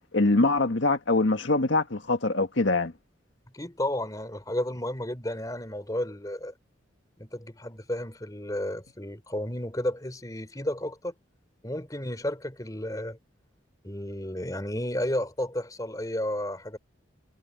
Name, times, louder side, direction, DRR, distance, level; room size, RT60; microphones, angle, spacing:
voice 1, 0.1-2.9, left 2 dB, 80° left, 1.7 m, -23 dB
voice 2, 3.5-6.5 7.2-11.1 11.6-13.2 13.8-16.8, left 1 dB, 20° left, 3.3 m, -32 dB
head